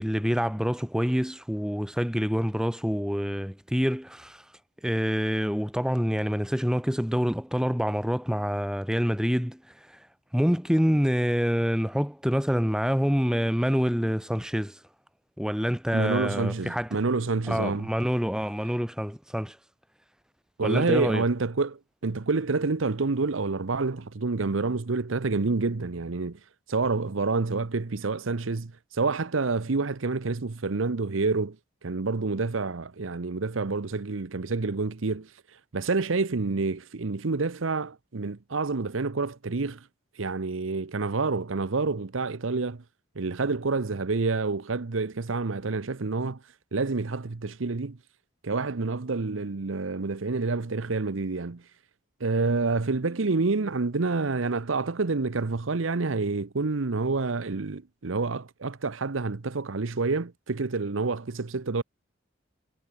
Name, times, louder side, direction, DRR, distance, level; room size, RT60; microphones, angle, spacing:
voice 1, 0.0-4.4 4.8-9.6 9.9-10.0 10.3-14.8 15.4-17.0 17.5-19.6 20.6-21.2, equal, 5° right, 1.8 m, -26 dB
voice 2, 15.9-17.9 20.6-26.4 26.7-31.6 31.8-35.3 35.7-39.8 40.2-42.8 43.2-46.4 46.7-48.0 48.4-51.6 52.2-61.8, right 3 dB, 85° right, 0.8 m, -28 dB
head